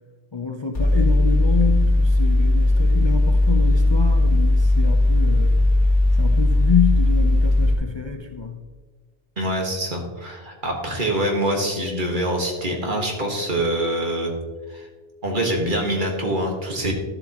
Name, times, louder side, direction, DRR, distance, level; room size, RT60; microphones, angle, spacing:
voice 1, 0.3-5.6 6.2-8.6, left 6 dB, 35° left, 3 dB, 0.5 m, -27 dB
Mechanical fan, 0.7-7.7, left 2 dB, 50° left, 2.1 m, -17 dB
voice 2, 9.4-14.3 14.7-14.9 15.2-16.9, right 1 dB, 50° right, 1 dB, 1.7 m, -25 dB
12.5 x 7.8 x 3.0 m, 1.3 s
omnidirectional pair, 1.1 m